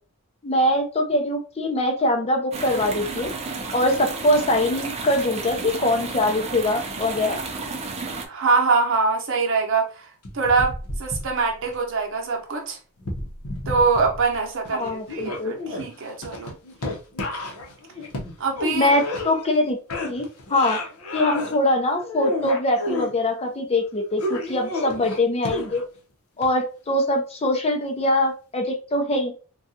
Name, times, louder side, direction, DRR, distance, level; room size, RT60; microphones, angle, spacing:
voice 1, 0.4-3.3 3.7-7.4 14.7-15.5 18.7-19.8 20.0-20.8 21.1-25.8 26.4-29.3, left 1 dB, 30° left, 0.5 m, -23 dB
sound 1, 2.5-8.3, right 3 dB, 30° right, 0.5 m, -32 dB
voice 2, 8.3-10.1 10.3-12.8 13.7-16.5 18.4-18.9, right 4 dB, 60° right, 0.8 m, -23 dB
sound 2, 10.2-11.7 13.0-14.4 14.6-19.6 19.9-21.6 22.0-23.1 24.2-26.0 26.4-26.5, left 2 dB, 70° left, 0.8 m, -31 dB
3.7 x 2.3 x 2.7 m
head